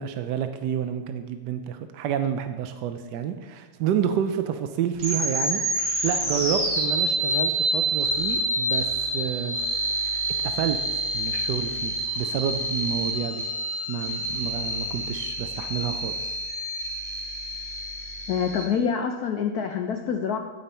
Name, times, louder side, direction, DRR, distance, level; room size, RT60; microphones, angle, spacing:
voice 1, 0.0-8.9 9.1-9.6 10.0-10.8 11.1-13.4 13.9-16.4, right 8 dB, 75° right, 8 dB, 1.0 m, -29 dB
sound 1, 5.0-18.6, right 1 dB, 25° right, 2.7 m, -28 dB
voice 2, 18.3-20.4, left 7 dB, 85° left, 4 dB, 0.8 m, -26 dB
15.0 x 5.3 x 4.3 m, 1.3 s
omnidirectional pair, 2.3 m